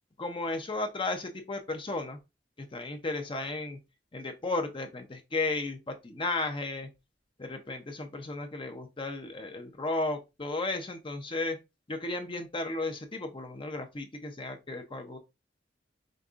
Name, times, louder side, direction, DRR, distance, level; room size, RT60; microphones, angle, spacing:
voice 1, 0.2-2.2 2.7-3.8 4.1-6.9 7.4-11.6 11.9-15.2, left 2 dB, 30° left, 0.7 m, -34 dB
5.2 x 3.4 x 2.5 m
head